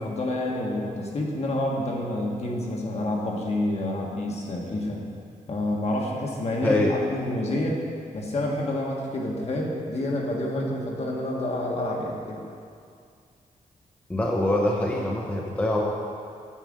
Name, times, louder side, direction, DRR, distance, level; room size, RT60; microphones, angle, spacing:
voice 1, 0.0-5.0 5.5-7.8 8.1-12.4, left 1 dB, 50° left, -2 dB, 1.6 m, -28 dB
voice 2, 6.6-6.9 14.1-15.8, left 1 dB, 10° left, -2 dB, 0.8 m, -24 dB
9.1 x 5.0 x 7.7 m, 2.3 s
wide cardioid pair, 135°, 14 cm